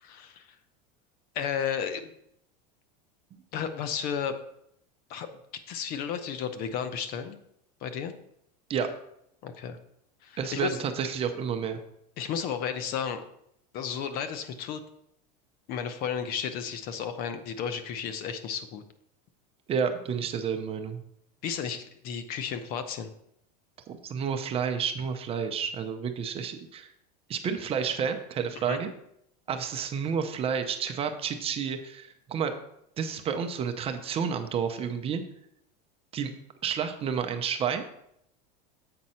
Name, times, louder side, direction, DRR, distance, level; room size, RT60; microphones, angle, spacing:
voice 1, 0.0-0.5 1.3-2.1 3.5-4.4 5.1-5.3 5.7-7.4 7.8-8.1 9.4-9.8 10.2-10.8 12.2-13.2 13.7-14.8 15.7-18.8 21.4-23.1 28.7-28.8, left 7 dB, 45° left, 10 dB, 0.7 m, -33 dB
voice 2, 10.4-11.8 19.7-21.0 23.9-26.9 27.3-28.9 29.5-32.5 33.0-35.2 36.1-36.3 36.6-37.8, right 7 dB, 30° right, 7 dB, 0.7 m, -30 dB
7.7 x 5.3 x 4.3 m, 0.75 s
supercardioid pair, 140°, 21 cm